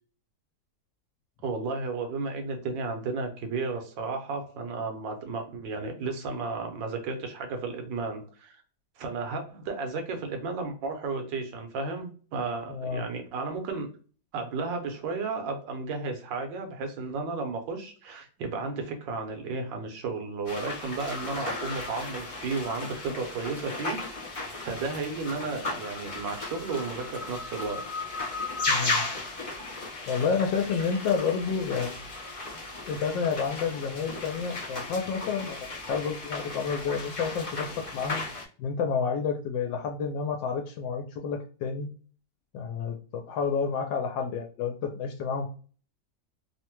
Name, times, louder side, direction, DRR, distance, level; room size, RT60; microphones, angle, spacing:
voice 1, 1.4-8.6 9.0-13.9 14.3-24.0 24.6-28.1, right 4 dB, 85° right, 4 dB, 1.5 m, -33 dB
voice 2, 12.7-13.0 28.7-29.0 29.8-31.9 32.9-38.2 38.6-41.9 42.5-45.5, left 6 dB, 80° left, 3 dB, 1.3 m, -30 dB
sound 1, 20.5-38.4, left 3 dB, 40° left, 0.4 m, -35 dB
3.5 x 2.1 x 2.8 m, 0.40 s
omnidirectional pair, 2.0 m